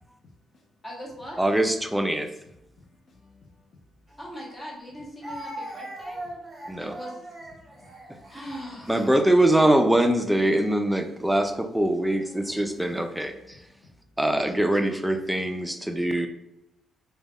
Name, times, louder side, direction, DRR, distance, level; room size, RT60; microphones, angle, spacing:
voice 1, 0.8-1.4 4.2-6.2 6.8-7.3 8.3-8.9 9.5-9.8, equal, 20° left, 0.9 m, -40 dB
voice 2, 1.4-2.3 6.7-6.9 8.9-13.6 14.2-16.3, right 1 dB, 5° right, 0.3 m, -23 dB
voice 3, 3.1-3.6 3.9-4.0 7.6-8.4 13.3-13.6 14.0-14.2, left 3 dB, 55° left, 0.5 m, -57 dB
Speech, 4.1-4.2 5.2-10.1 10.9-11.1 12.1-12.7, right 1 dB, 20° right, 0.9 m, -41 dB
3.2 x 2.2 x 2.3 m
cardioid pair, 105°, 0 cm